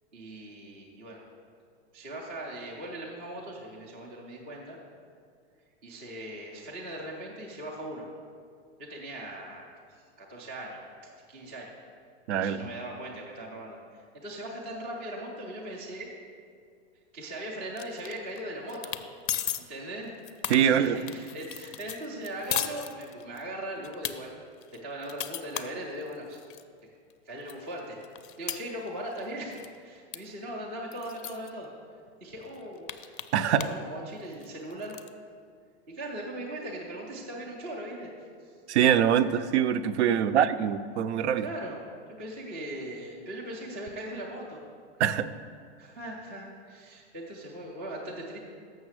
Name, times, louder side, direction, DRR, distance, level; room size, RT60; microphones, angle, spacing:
voice 1, 0.1-1.3 1.9-4.8 5.8-8.1 8.8-11.7 12.4-16.1 17.1-19.0 19.7-20.1 20.6-24.3 24.7-26.4 26.8-26.9 27.3-28.0 28.4-29.6 29.8-31.7 32.2-32.8 33.5-35.0 35.9-38.1 38.4-38.5 40.2-40.4 41.4-41.8 42.2-44.6 45.8-48.4, right 1 dB, 10° right, -3 dB, 0.3 m, -39 dB
voice 2, 12.3-12.6 20.5-21.0 33.3-33.6 38.7-41.5 45.0-45.3, right 9 dB, 80° right, 12 dB, 0.5 m, -24 dB
sound 1, 17.8-18.4 18.7-19.0 19.3-19.6 20.0-23.4 23.8-24.1 24.6-26.6 27.1-27.2 27.5-29.3 29.5-29.8 30.1-30.2 30.4-30.5 30.9-31.5 32.1-32.2 32.4-33.8 34.1-35.1, left 11 dB, 50° left, 0.4 m, -36 dB
6.9 x 6.4 x 6.2 m, 2.2 s
supercardioid pair, 170°, 33 cm